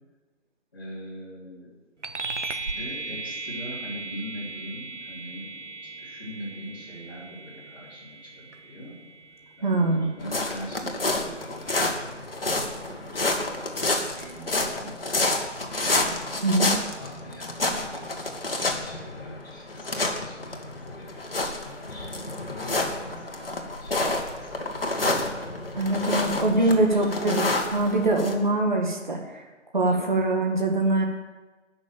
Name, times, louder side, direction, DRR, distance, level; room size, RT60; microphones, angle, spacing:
voice 1, 0.7-1.7 2.6-8.9 9.6-15.3 15.8-16.2 16.6-18.2 18.5-25.1 25.8-27.2 29.9-30.1, equal, 15° left, -8 dB, 2.9 m, -42 dB
sound 1, 2.0-11.9, right 3 dB, 70° right, 1.0 m, -38 dB
voice 2, 9.6-10.1 16.4-16.7 25.7-29.4 29.7-31.0, right 2 dB, 40° right, 1 dB, 1.5 m, -23 dB
sound 2, 10.2-28.3, left 2 dB, 50° left, 1.7 m, -29 dB
11.0 x 6.3 x 8.8 m, 1.2 s
figure-of-eight pair, 175°, 37 cm